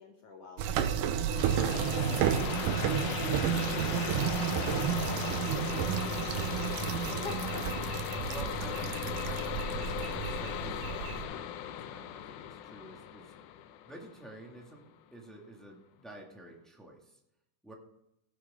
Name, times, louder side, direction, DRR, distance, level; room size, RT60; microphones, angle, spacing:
voice 1, 0.0-3.2 3.7-4.3 4.7-5.2 5.5-6.1 6.4-7.9, left 4 dB, 60° left, 3 dB, 2.0 m, -47 dB
sound 1, 0.6-11.2, right 9 dB, 85° right, 2.3 m, -32 dB
sound 2, 1.3-14.7, left 10 dB, 80° left, 2.2 m, -37 dB
voice 2, 8.2-13.3 13.8-17.2 17.6-17.7, right 1 dB, ahead, -1 dB, 1.1 m, -49 dB
16.5 x 7.5 x 3.7 m, 0.84 s
omnidirectional pair, 3.7 m